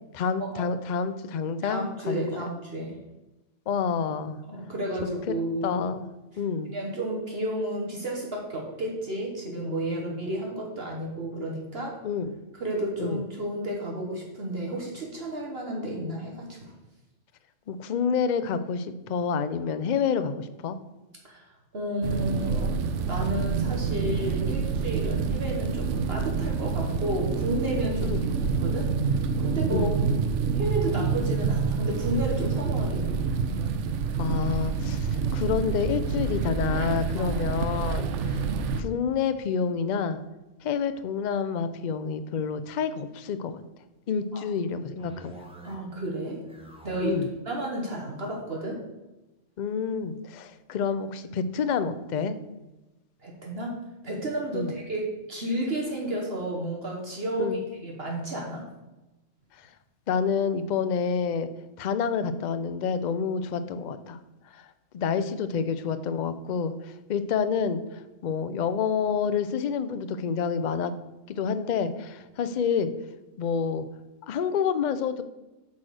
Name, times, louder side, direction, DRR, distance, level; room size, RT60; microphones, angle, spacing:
voice 1, 0.1-2.4 3.7-4.4 5.3-5.4 5.6-6.1 6.4-6.7 12.0-12.3 13.0-13.2 17.7-20.8 24.5-24.6 28.0-28.2 29.7-30.0 34.2-38.4 38.8-40.2 40.6-43.6 44.1-45.3 47.0-47.3 49.6-52.4 54.5-54.7 57.4-57.6 60.1-61.5 61.8-64.2 64.5-64.6 64.9-70.9 71.3-72.9 73.4-73.9 74.3-75.2, left 6 dB, 50° left, 11 dB, 0.5 m, -28 dB
voice 2, 1.6-2.9 4.4-5.8 6.7-12.0 12.5-16.7 21.2-21.4 21.7-22.8 23.1-28.3 28.6-29.9 30.5-33.2 37.2-37.4 44.3-44.4 45.6-46.4 46.8-47.2 47.4-48.8 53.2-53.7 54.0-58.6, right 1 dB, 55° right, -1 dB, 1.6 m, -32 dB
sound 1, 22.0-38.8, right 5 dB, 75° right, 0.9 m, -27 dB
sound 2, 45.0-46.0 46.3-47.4, right 1 dB, 5° right, 1.2 m, -47 dB
8.8 x 4.2 x 6.4 m, 1.0 s
omnidirectional pair, 1.3 m